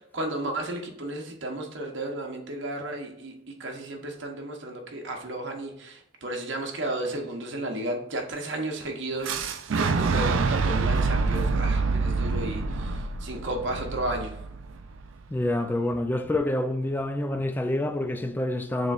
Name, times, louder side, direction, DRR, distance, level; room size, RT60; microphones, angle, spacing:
voice 1, 0.1-3.3 3.6-14.3, right 1 dB, 65° right, 0.9 m, -33 dB
Fire / Explosion, 9.2-15.1, right 4 dB, 85° right, 0.4 m, -26 dB
voice 2, 15.3-18.9, left 1 dB, 10° left, 0.3 m, -27 dB
6.8 x 3.1 x 2.4 m
head